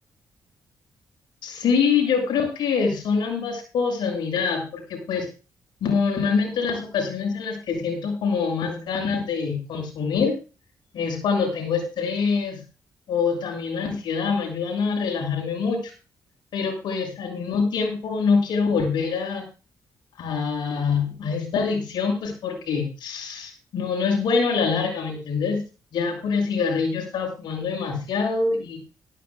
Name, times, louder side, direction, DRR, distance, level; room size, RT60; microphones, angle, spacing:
voice 1, 1.4-5.3 5.8-10.3 10.9-12.6 13.1-15.9 16.5-19.4 20.2-25.6 25.9-28.8, left 5 dB, 80° left, 1 dB, 7.1 m, -25 dB
17.5 x 14.5 x 2.4 m, 0.33 s
cardioid pair, 65°, 8 cm